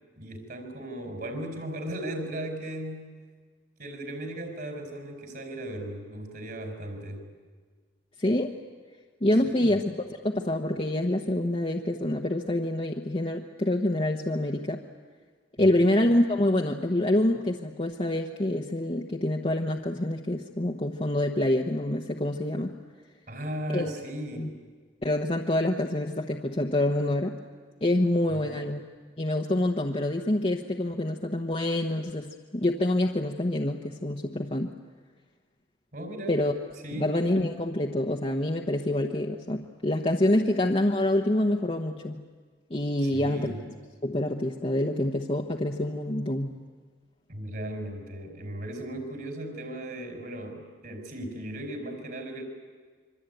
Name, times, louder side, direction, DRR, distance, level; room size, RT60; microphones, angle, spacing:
voice 1, 0.2-3.1 3.8-7.3 9.4-9.7 15.7-15.9 23.3-24.6 28.3-28.6 35.9-36.4 36.8-37.2 43.0-43.6 47.3-52.4, right 1 dB, 55° right, 4 dB, 4.7 m, -37 dB
voice 2, 8.2-8.5 9.2-9.8 10.1-14.8 15.6-22.7 23.7-23.9 24.3-24.5 25.0-27.4 27.8-28.8 29.2-34.7 36.3-36.5 37.0-42.2 42.7-43.5 44.0-46.6, left 1 dB, 35° left, 1 dB, 1.1 m, -26 dB
26.0 x 24.0 x 9.2 m, 1.5 s
head